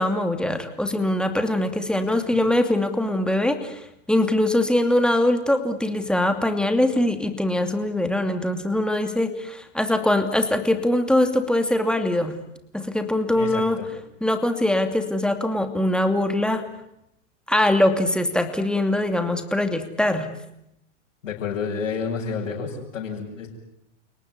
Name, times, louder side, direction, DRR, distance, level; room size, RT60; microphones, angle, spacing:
voice 1, 0.0-12.3 12.7-13.8 14.2-16.6 17.5-20.3, left 1 dB, ahead, 7 dB, 2.6 m, -22 dB
voice 2, 13.3-13.9 21.2-23.5, left 5 dB, 75° left, -4 dB, 7.2 m, -30 dB
30.0 x 18.5 x 9.8 m, 0.82 s
hypercardioid pair, 125°, 38 cm